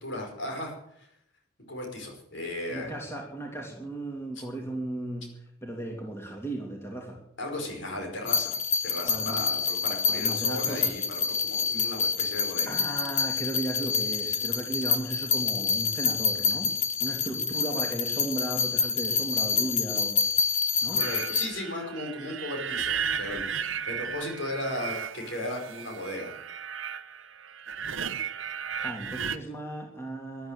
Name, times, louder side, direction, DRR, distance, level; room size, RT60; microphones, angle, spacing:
voice 1, 0.0-1.1 1.6-2.9 4.4-4.5 7.4-12.8 20.9-26.3, left 1 dB, 60° left, 2 dB, 5.2 m, -36 dB
voice 2, 2.7-5.3 5.6-7.2 9.1-9.4 10.1-11.0 12.7-16.7 17.0-20.2 20.8-21.0 28.8-30.5, right 1 dB, 10° left, 1 dB, 2.9 m, -35 dB
sound 1, 8.3-21.5, left 5 dB, 35° left, 1.3 m, -27 dB
sound 2, 21.0-29.4, right 7 dB, 70° right, 0.9 m, -35 dB
14.0 x 11.5 x 9.1 m, 0.75 s
head